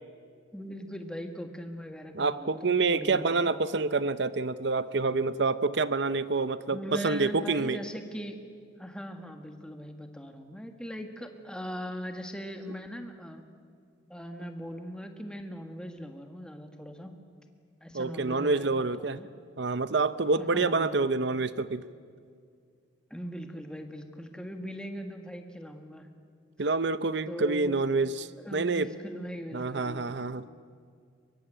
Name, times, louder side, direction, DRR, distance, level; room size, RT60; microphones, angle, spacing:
voice 1, 0.5-3.5 6.7-8.4 8.8-13.4 14.1-17.1 17.8-18.7 19.0-19.3 20.4-21.0 23.1-26.1 27.3-27.8 28.4-30.1, equal, 5° left, 5 dB, 1.6 m, -40 dB
voice 2, 2.1-7.8 17.9-19.2 19.6-21.8 26.6-28.9 29.5-30.4, right 3 dB, 55° right, 14 dB, 0.7 m, -27 dB
22.5 x 22.5 x 9.0 m, 2.2 s
head